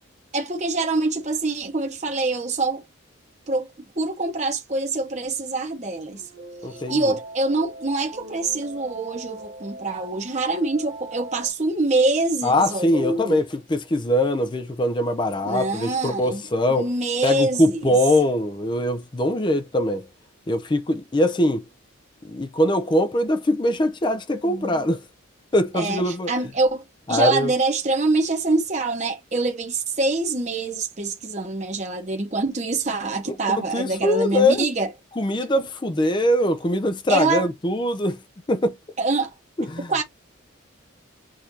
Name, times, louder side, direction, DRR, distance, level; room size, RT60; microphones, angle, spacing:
voice 1, 0.3-2.8 3.5-3.7 4.0-6.2 6.9-13.4 15.4-16.4 16.7-18.0 24.4-24.9 25.7-26.8 27.1-34.9 37.1-37.5 39.0-39.3 39.9-40.0, right 3 dB, 35° right, 1.0 m, -25 dB
sound 1, 6.1-11.5, right 2 dB, 55° right, 1.8 m, -40 dB
voice 2, 6.6-7.1 12.4-16.9 17.2-20.1 20.5-21.6 22.2-25.0 25.5-26.3 27.1-27.5 33.3-34.7 35.2-38.2 38.5-38.8 39.6-39.9, left 1 dB, 20° left, 0.4 m, -22 dB
6.2 x 2.6 x 2.7 m
head